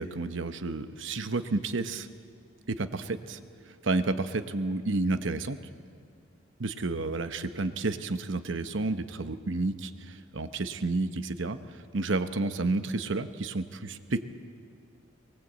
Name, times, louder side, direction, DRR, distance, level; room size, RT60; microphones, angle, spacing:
voice 1, 0.0-2.1 2.7-5.6 6.6-14.3, right 3 dB, 80° right, 9 dB, 0.9 m, -31 dB
23.0 x 19.0 x 8.1 m, 2.3 s
head